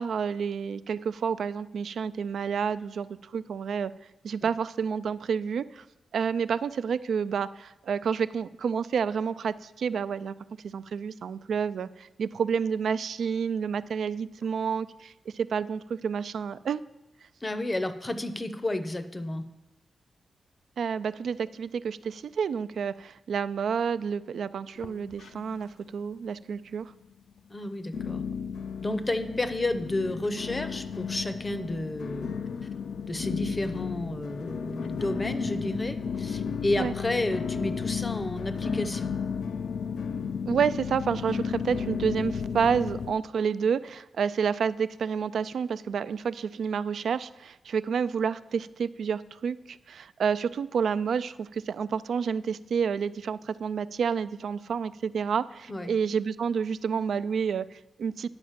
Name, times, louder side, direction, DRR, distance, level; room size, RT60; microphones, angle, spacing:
voice 1, 0.0-3.1 3.3-3.9 4.2-5.8 6.1-10.3 10.6-16.8 20.8-26.9 36.8-36.9 40.5-58.3, right 6 dB, 75° right, 15 dB, 0.3 m, -29 dB
voice 2, 17.4-19.4 27.5-28.2 28.8-32.3 33.1-39.2 55.7-55.9, left 1 dB, 20° left, 10 dB, 0.6 m, -31 dB
sound 1, 24.8-25.7 26.0-26.6 27.1-27.2 27.9-43.1, left 6 dB, 80° left, 0.4 m, -33 dB
9.8 x 5.1 x 7.2 m, 0.98 s
wide cardioid pair, 155°, 0 cm